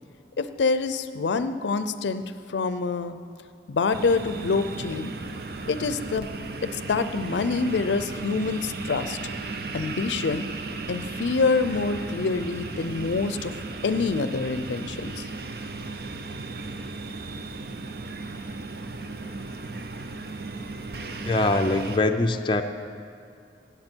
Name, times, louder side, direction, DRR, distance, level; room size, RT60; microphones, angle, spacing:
voice 1, 0.4-2.2 2.5-3.2 3.7-5.1 5.7-6.3 6.6-9.2 9.7-10.4 10.9-13.5 13.8-15.2, left 4 dB, 85° left, 11 dB, 0.5 m, -26 dB
sound 1, 3.9-22.0, right 3 dB, 60° right, 0.7 m, -35 dB
voice 2, 21.2-22.6, left 2 dB, 25° left, 5 dB, 0.5 m, -23 dB
15.5 x 9.1 x 4.5 m, 2.5 s
head